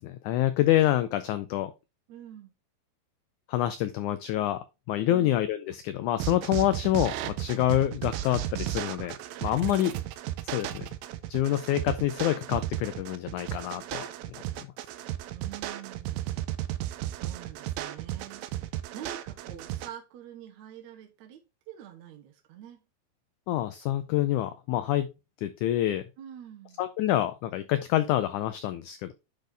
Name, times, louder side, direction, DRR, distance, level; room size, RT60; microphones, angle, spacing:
voice 1, 0.0-1.7 3.5-4.6 4.9-9.2 9.4-10.0 10.4-10.9 11.3-14.1 14.6-14.7 23.5-25.1 25.4-26.0 26.8-29.1, left 13 dB, 90° left, 1.7 m, -27 dB
voice 2, 2.1-2.5 5.1-5.4 9.6-10.1 15.3-16.3 17.1-21.4 21.7-22.8 26.2-26.9, right 10 dB, 65° right, 2.0 m, -46 dB
sound 1, 6.2-19.9, right 13 dB, 85° right, 2.4 m, -34 dB
10.0 x 4.2 x 3.3 m
omnidirectional pair, 4.1 m